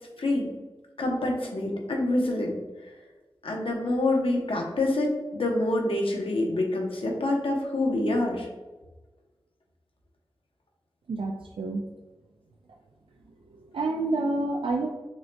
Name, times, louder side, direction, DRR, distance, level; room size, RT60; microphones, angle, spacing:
voice 1, 0.2-0.5 1.0-2.6 3.4-8.5, left 2 dB, 75° left, 0 dB, 0.9 m, -26 dB
voice 2, 11.1-11.9 13.7-14.9, right 2 dB, 75° right, 1 dB, 0.3 m, -28 dB
5.9 x 2.6 x 2.2 m, 1.2 s
cardioid pair, 40°, 9 cm